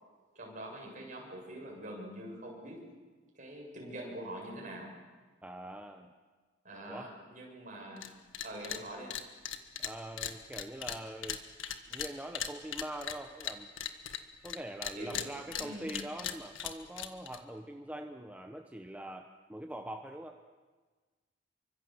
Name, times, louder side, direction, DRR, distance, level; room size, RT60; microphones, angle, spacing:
voice 1, 0.4-2.9 3.3-4.9 6.6-8.2 8.4-9.1 15.0-16.0, right 1 dB, 40° right, 0 dB, 7.4 m, -44 dB
voice 2, 5.4-6.1 6.9-7.1 9.8-11.4 11.9-13.7 14.4-20.4, right 1 dB, 5° right, 4 dB, 1.0 m, -43 dB
sound 1, 8.0-8.1 8.3-8.8 9.1-14.6 14.8-17.4, left 9 dB, 80° left, 1.7 m, -38 dB
28.0 x 24.5 x 7.9 m, 1.4 s
head